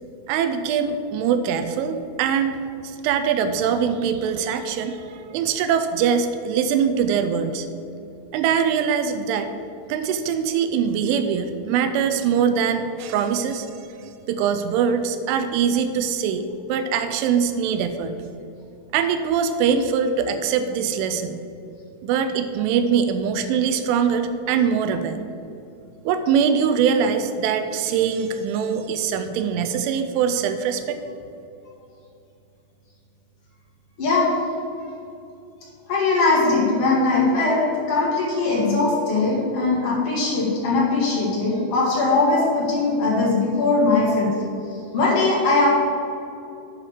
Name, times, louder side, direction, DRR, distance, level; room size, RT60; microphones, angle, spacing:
voice 1, 0.3-2.6 3.0-7.7 8.3-9.5 9.9-13.7 14.3-18.1 18.9-21.4 22.0-25.2 26.1-31.0, right 7 dB, 85° right, 9 dB, 3.0 m, -22 dB
voice 2, 35.9-44.3 44.9-45.7, left 3 dB, 45° left, -5 dB, 2.2 m, -20 dB
8.4 x 5.7 x 6.5 m, 2.8 s
omnidirectional pair, 5.6 m